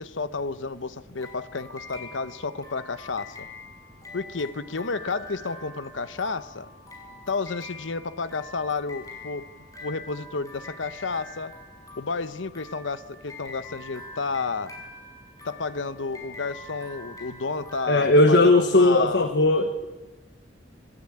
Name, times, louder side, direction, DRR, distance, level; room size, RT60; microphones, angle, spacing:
voice 1, 0.0-3.5 4.1-6.7 7.3-9.5 9.8-11.5 12.0-14.7 15.4-19.3, left 4 dB, 85° left, 14 dB, 0.9 m, -31 dB
sound 1, 1.2-18.8, left 2 dB, 20° left, 5.6 m, -44 dB
voice 2, 17.9-19.9, left 2 dB, 65° left, 7 dB, 1.3 m, -18 dB
25.5 x 14.5 x 8.7 m, 1.2 s
head